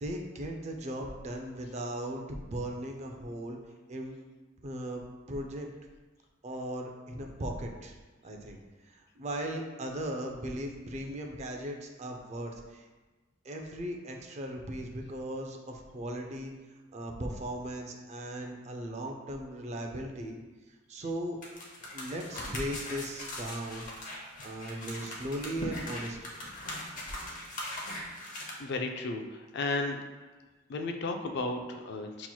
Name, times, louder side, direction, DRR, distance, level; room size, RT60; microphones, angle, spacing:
voice 1, 0.0-3.6 3.9-4.2 4.6-5.7 6.4-7.9 8.2-8.6 9.2-12.8 13.5-16.5 16.9-20.4 20.9-21.4 21.9-23.8 24.4-26.2, right 1 dB, 35° right, 2 dB, 0.4 m, -37 dB
sound 1, 21.4-28.5, left 1 dB, 45° left, 0.8 m, -40 dB
voice 2, 28.6-30.0 30.7-32.3, left 3 dB, 60° left, 5 dB, 0.4 m, -34 dB
5.6 x 3.0 x 2.3 m, 1.2 s
head